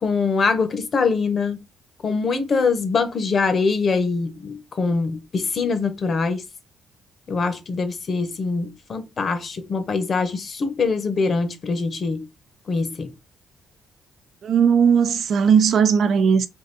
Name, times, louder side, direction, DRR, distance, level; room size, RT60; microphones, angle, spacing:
voice 1, 0.0-1.6 2.0-6.4 7.3-12.3 12.7-13.1, left 4 dB, 45° left, 0.9 m, -23 dB
voice 2, 14.4-16.5, right 7 dB, 65° right, 0.6 m, -17 dB
3.7 x 2.5 x 3.9 m
cardioid pair, 90°, 0 cm